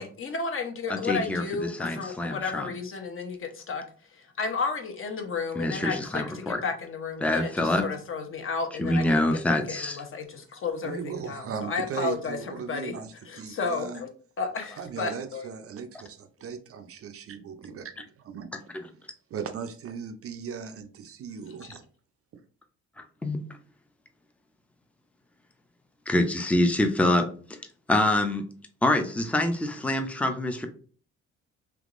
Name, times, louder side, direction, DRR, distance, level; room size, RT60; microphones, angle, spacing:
voice 1, 0.0-3.8 4.1-13.0 13.3-14.1 14.4-15.5 21.6-21.7, left 4 dB, 45° left, 5 dB, 0.8 m, -33 dB
voice 2, 0.9-2.8 5.5-6.6 7.2-7.9 8.8-10.0 18.5-18.9 23.0-23.4 26.1-27.6 27.9-28.5 28.8-30.7, left 1 dB, 5° left, 6 dB, 0.5 m, -26 dB
voice 3, 10.8-14.0 14.8-18.5 19.3-21.9, right 6 dB, 50° right, 8 dB, 0.5 m, -37 dB
3.5 x 2.9 x 2.5 m, 0.42 s
cardioid pair, 90°, 30 cm